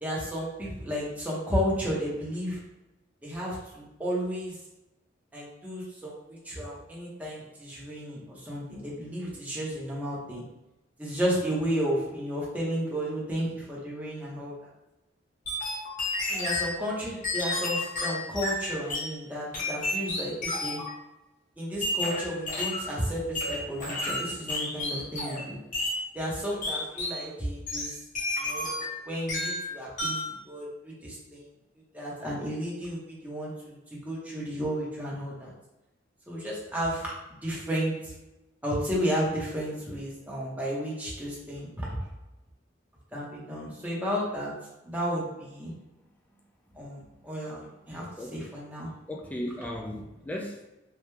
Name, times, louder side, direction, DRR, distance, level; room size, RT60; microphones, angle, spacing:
voice 1, 0.0-2.6 3.2-4.6 5.3-10.4 11.0-14.5 16.3-20.8 21.6-25.6 26.1-28.0 28.4-28.6 29.1-30.2 30.5-31.4 31.9-35.5 36.3-37.1 37.4-38.1 38.6-42.0 43.1-44.5 44.8-45.7 46.8-48.1 48.3-48.9, equal, 10° right, -6 dB, 0.8 m, -32 dB
sound 1, 15.5-16.7 17.2-19.1 19.5-20.9 21.8-22.9 23.3-25.5 25.7-26.0 26.6-27.2 27.7-29.0 29.3-29.7 30.0-30.3, left 2 dB, 45° left, 1.0 m, -31 dB
voice 2, 47.9-48.4 49.1-50.7, left 1 dB, 10° left, 0 dB, 0.3 m, -37 dB
3.3 x 2.3 x 3.1 m, 0.95 s
head